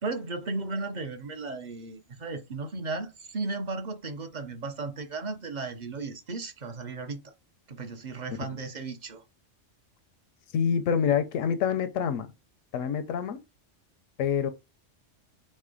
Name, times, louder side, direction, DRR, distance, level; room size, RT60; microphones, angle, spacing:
voice 1, 0.0-7.2 7.7-9.2, right 3 dB, 50° right, 0.6 m, -35 dB
voice 2, 10.5-12.3 12.7-13.4 14.2-14.5, left 7 dB, 90° left, 0.9 m, -26 dB
3.6 x 3.2 x 3.7 m
omnidirectional pair, 1.3 m